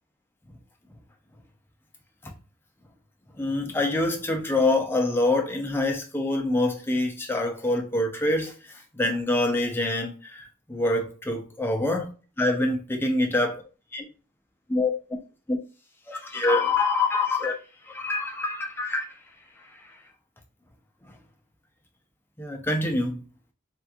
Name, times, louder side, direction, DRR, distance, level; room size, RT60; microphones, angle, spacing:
voice 1, 3.4-12.1 12.4-13.6 13.9-14.0 14.7-14.9 15.5-15.6 16.1-17.5 17.8-19.1 19.8-19.9 22.4-23.2, left 2 dB, 10° left, 0.4 m, -25 dB
3.4 x 2.8 x 2.3 m
head